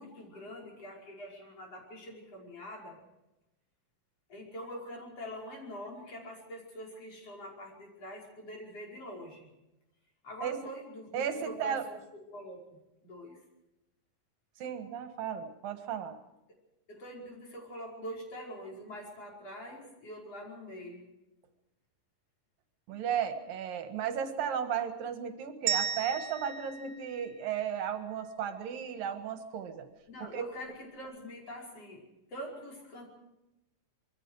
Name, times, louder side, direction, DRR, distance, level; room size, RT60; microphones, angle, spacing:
voice 1, 0.0-3.0 4.3-9.5 10.2-13.4 16.9-21.1 30.1-33.1, equal, 45° left, -1 dB, 6.2 m, -44 dB
voice 2, 11.1-11.8 14.6-16.2 22.9-29.9 30.2-30.4, right 8 dB, 80° right, 7 dB, 3.4 m, -34 dB
sound 1, 25.7-27.9, right 9 dB, 65° right, 2.4 m, -35 dB
25.5 x 22.5 x 4.8 m, 0.94 s
omnidirectional pair, 3.9 m